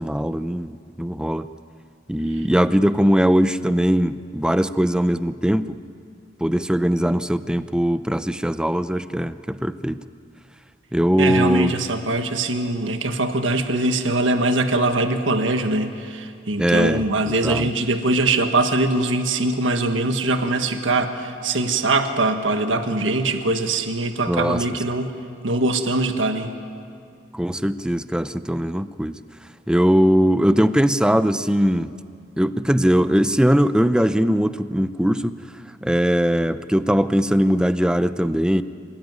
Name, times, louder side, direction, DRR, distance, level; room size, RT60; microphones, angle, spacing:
voice 1, 0.0-1.5 2.1-5.8 6.4-10.0 10.9-11.7 16.6-17.1 17.4-17.7 24.3-24.6 27.3-29.2 29.7-31.9 32.4-35.4 35.8-38.6, equal, 5° right, 12 dB, 0.6 m, -20 dB
voice 2, 11.2-25.1 25.4-26.5, right 2 dB, 85° right, 6 dB, 1.6 m, -22 dB
27.5 x 18.5 x 9.6 m, 2.4 s
head